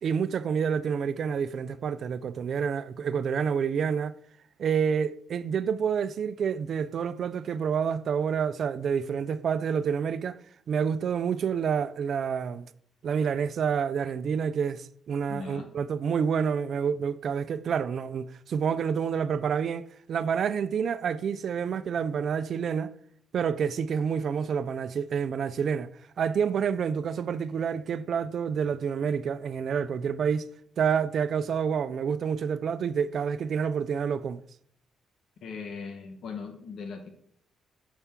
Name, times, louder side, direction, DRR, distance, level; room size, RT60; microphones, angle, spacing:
voice 1, 0.0-4.2 4.6-10.4 10.7-12.7 13.0-22.9 23.3-25.9 26.2-30.5 30.8-34.4, right 7 dB, 60° right, 0.3 m, -28 dB
voice 2, 15.3-15.7 35.4-37.1, left 5 dB, 70° left, 1.0 m, -39 dB
6.8 x 4.2 x 3.5 m
cardioid pair, 90°, 0 cm